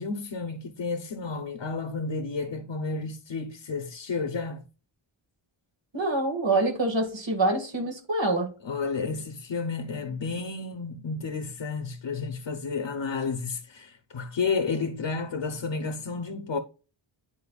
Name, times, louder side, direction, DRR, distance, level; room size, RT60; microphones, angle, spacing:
voice 1, 0.0-4.6 8.6-16.6, left 4 dB, 65° left, 0.9 m, -31 dB
voice 2, 5.9-8.5, right 2 dB, 60° right, 2.0 m, -26 dB
10.0 x 4.4 x 2.4 m
wide cardioid pair, 80°, 50 cm